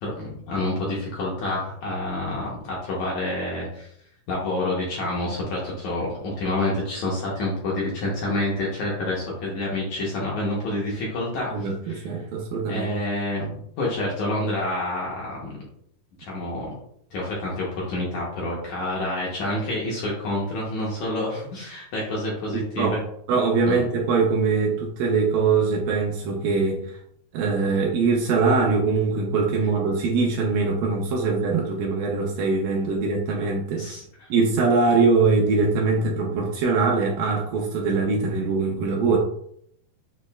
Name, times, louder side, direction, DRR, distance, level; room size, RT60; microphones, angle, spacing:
voice 1, 0.0-3.9 4.3-12.1 12.7-15.5 16.2-16.7 17.1-23.0 23.6-23.8 33.8-34.3, left 1 dB, 70° left, -4 dB, 1.8 m, -28 dB
voice 2, 11.5-12.9 22.8-23.0 23.3-26.8 27.3-33.9 34.3-39.2, right 4 dB, 80° right, 0 dB, 2.0 m, -22 dB
6.4 x 3.1 x 2.3 m, 0.69 s
omnidirectional pair, 4.3 m